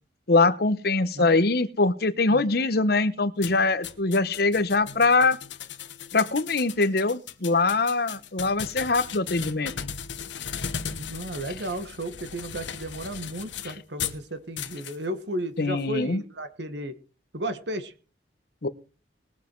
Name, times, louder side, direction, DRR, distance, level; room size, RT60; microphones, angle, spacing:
voice 1, 0.3-5.4 6.1-9.9 15.6-16.2 18.6-18.7, left 3 dB, 55° left, 14 dB, 0.9 m, -23 dB
sound 1, 3.4-14.2 14.6-15.0, left 7 dB, 80° left, 1.1 m, -37 dB
voice 2, 11.0-16.9 17.3-17.9, right 1 dB, 70° right, 10 dB, 1.5 m, -34 dB
20.5 x 7.3 x 4.5 m, 0.35 s
head